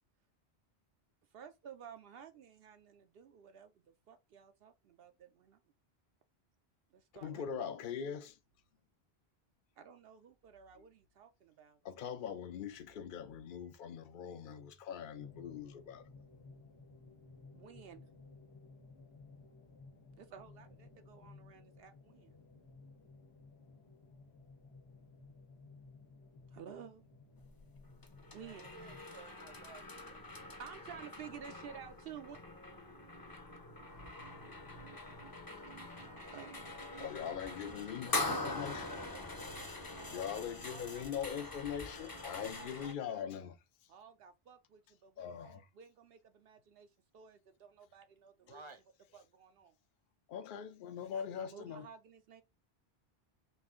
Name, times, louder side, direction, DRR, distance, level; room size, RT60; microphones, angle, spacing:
voice 1, 1.3-5.6 6.9-7.7 9.8-11.8 17.5-18.1 20.2-22.4 26.5-27.1 28.3-28.7 30.5-32.4 36.3-36.5 37.0-37.3 38.1-39.2 39.5-41.5 42.2-43.5 43.9-48.7 49.1-49.8 51.3-52.4, right 7 dB, 70° right, 0.7 m, -53 dB
voice 2, 7.1-8.4 11.8-16.0 37.0-38.9 40.1-43.6 45.2-45.7 50.3-51.9, left 8 dB, 60° left, 0.7 m, -42 dB
voice 3, 13.5-14.6 28.4-30.2 48.4-48.8, right 3 dB, 35° right, 0.7 m, -56 dB
sound 1, 15.2-29.0, left 3 dB, 85° left, 1.4 m, -57 dB
sound 2, 27.4-42.9, left 2 dB, 25° left, 0.6 m, -44 dB
sound 3, 33.9-42.3, equal, 90° right, 2.4 m, -62 dB
5.4 x 2.5 x 3.6 m
omnidirectional pair, 1.0 m